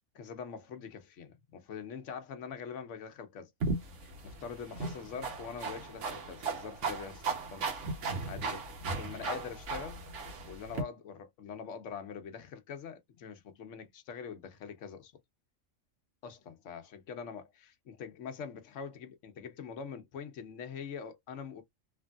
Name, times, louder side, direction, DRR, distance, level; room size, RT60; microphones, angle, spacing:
voice 1, 0.1-3.5 4.0-7.2 7.5-7.7 8.3-8.7 9.0-10.0 10.4-15.1 16.2-21.6, left 6 dB, 70° left, 1.0 m, -44 dB
sound 1, 3.6-10.8, right 4 dB, 70° right, 1.3 m, -36 dB
3.2 x 2.6 x 2.3 m
omnidirectional pair, 1.3 m